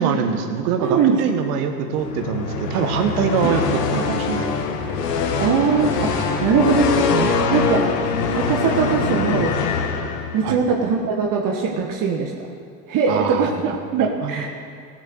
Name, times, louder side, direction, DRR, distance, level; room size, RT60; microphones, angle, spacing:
voice 1, 0.0-4.5 10.4-10.6 13.1-14.5, right 6 dB, 70° right, 6 dB, 1.5 m, -24 dB
voice 2, 0.8-1.2 3.4-3.5 5.4-7.9 8.3-9.5 10.3-12.3 12.9-14.5, right 5 dB, 45° right, 1 dB, 1.3 m, -21 dB
sound 1, 1.9-10.6, left 5 dB, 75° left, 1.3 m, -23 dB
15.5 x 6.6 x 6.5 m, 2.3 s
hypercardioid pair, 80°, 47 cm